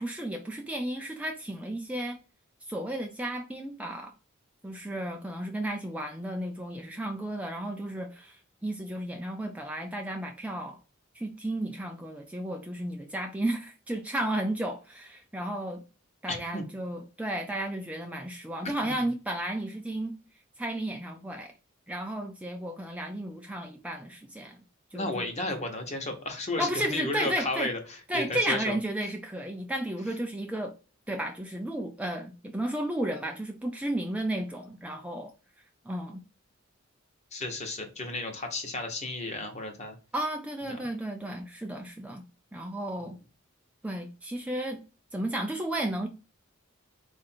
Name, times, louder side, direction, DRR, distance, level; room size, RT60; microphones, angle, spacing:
voice 1, 0.0-2.2 2.7-4.1 4.6-10.8 11.1-15.8 16.2-20.1 20.6-21.5 21.9-24.6 24.9-25.2 26.6-27.7 28.1-30.7 31.1-35.3 35.9-36.2 40.1-42.2 42.5-43.2 43.8-44.8 45.1-46.1, right 1 dB, 5° right, 3 dB, 0.4 m, -33 dB
voice 2, 16.3-16.6 18.8-18.9 24.9-28.8 37.3-40.0 40.7-40.8, left 2 dB, 35° left, 4 dB, 0.9 m, -33 dB
4.3 x 2.5 x 4.2 m, 0.33 s
head